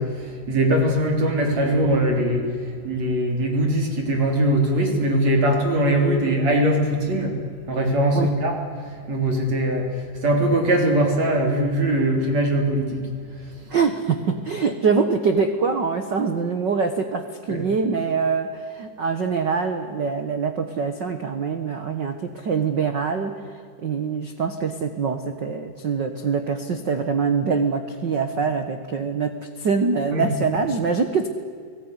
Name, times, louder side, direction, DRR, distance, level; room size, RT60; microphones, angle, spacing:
voice 1, 0.0-7.3 7.7-8.5 9.1-13.0 17.5-17.6 30.1-30.3, right 1 dB, 50° right, 2 dB, 4.6 m, -21 dB
voice 2, 13.7-31.3, right 5 dB, 70° right, 8 dB, 1.0 m, -24 dB
30.0 x 18.5 x 9.9 m, 2.1 s
omnidirectional pair, 4.2 m